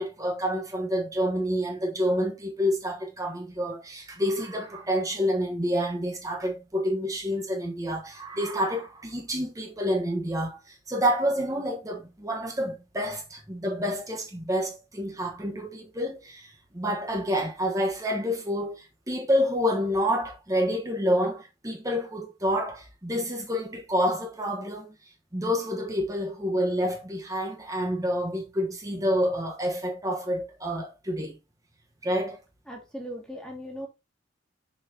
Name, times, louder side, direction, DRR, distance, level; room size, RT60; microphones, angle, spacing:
voice 1, 0.0-24.9 25.3-31.4 32.0-32.4, equal, 15° right, 1.1 m, -28 dB
voice 2, 32.7-33.9, equal, 5° left, 2.0 m, -38 dB
6.4 x 5.6 x 2.8 m
head